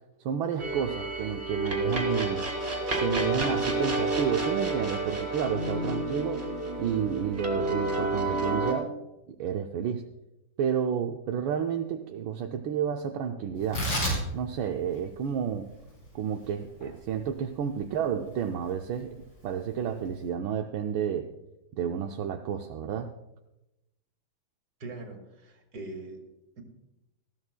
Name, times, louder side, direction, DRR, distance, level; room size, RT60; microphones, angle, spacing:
voice 1, 0.2-2.5 3.0-6.5 6.8-8.9 9.3-10.0 10.6-13.9 14.3-15.7 16.1-21.3 21.8-23.1, right 8 dB, 80° right, 4 dB, 1.4 m, -31 dB
sound 1, 0.6-8.7, right 2 dB, 30° right, 2.3 m, -30 dB
Tearing, 13.6-20.3, equal, 85° left, 5.2 m, -36 dB
voice 2, 24.8-26.2, right 2 dB, 50° right, 3 dB, 2.3 m, -41 dB
19.0 x 15.0 x 2.2 m, 0.93 s
omnidirectional pair, 2.2 m